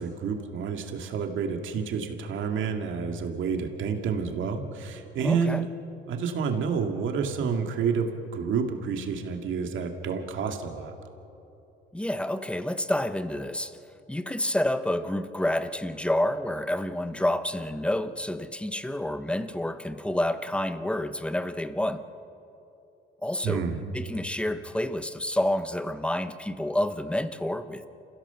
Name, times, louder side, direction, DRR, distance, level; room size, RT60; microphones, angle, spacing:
voice 1, 0.0-5.7 6.1-10.9 23.4-23.8, right 6 dB, 75° right, 4 dB, 2.3 m, -29 dB
voice 2, 5.2-5.6 11.9-13.8 14.1-22.0 23.2-23.7 23.9-27.8, left 1 dB, 5° left, 11 dB, 1.0 m, -29 dB
28.5 x 15.5 x 7.0 m, 2.8 s
cardioid pair, 90°, 20 cm